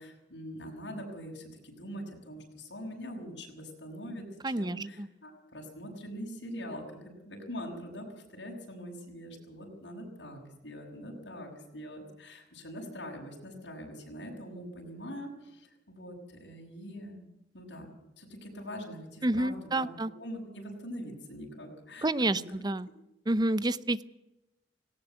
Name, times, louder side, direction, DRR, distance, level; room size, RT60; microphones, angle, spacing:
voice 1, 0.0-17.2 17.5-17.9 18.2-22.1 22.3-22.4, equal, 80° left, 0 dB, 6.4 m, -43 dB
voice 2, 4.4-5.1 19.2-20.1 22.0-22.9 23.3-24.0, right 2 dB, 25° right, 17 dB, 0.7 m, -29 dB
18.0 x 18.0 x 8.0 m, 0.93 s
head